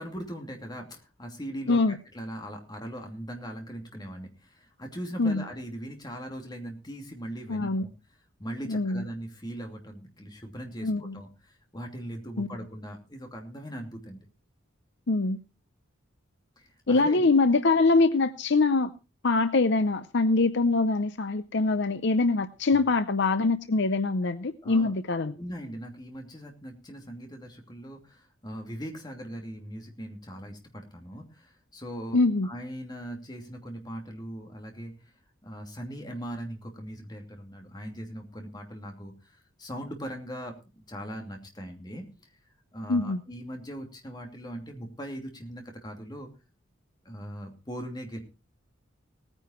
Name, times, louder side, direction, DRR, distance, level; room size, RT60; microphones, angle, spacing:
voice 1, 0.0-7.9 8.4-14.2 16.6-17.3 22.7-22.8 24.6-24.9 25.4-34.9 35.4-42.3 42.7-46.3 47.0-48.2, equal, 20° left, 3 dB, 2.8 m, -40 dB
voice 2, 7.5-7.9 8.7-9.0 10.8-11.1 12.4-12.5 15.1-15.4 16.9-18.9 19.2-25.3 32.1-32.5 42.9-43.2, left 3 dB, 60° left, 12 dB, 0.7 m, -24 dB
18.0 x 9.9 x 4.4 m, 0.31 s
head